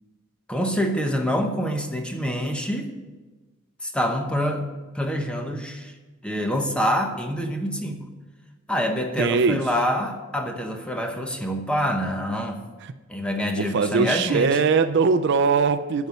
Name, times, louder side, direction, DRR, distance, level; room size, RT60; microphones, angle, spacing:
voice 1, 0.5-2.9 3.8-4.7 4.9-5.9 6.2-8.1 8.7-12.6 13.1-14.5, equal, 5° left, 4 dB, 0.9 m, -26 dB
voice 2, 9.2-9.6 12.8-12.9 13.6-16.1, right 5 dB, 55° right, 12 dB, 0.4 m, -21 dB
9.3 x 5.4 x 8.0 m, 1.2 s
head